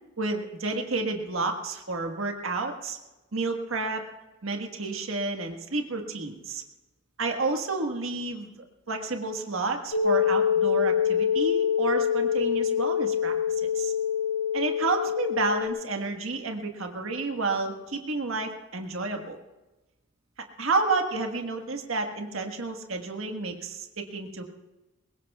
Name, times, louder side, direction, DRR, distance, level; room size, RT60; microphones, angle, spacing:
voice 1, 0.2-3.0 3.3-4.0 4.4-6.6 7.2-13.9 14.5-19.4 20.6-24.4, right 3 dB, 85° right, 4 dB, 1.5 m, -30 dB
sound 1, 9.9-15.7, left 8 dB, 80° left, 1.8 m, -25 dB
23.0 x 20.5 x 2.4 m, 1.1 s
head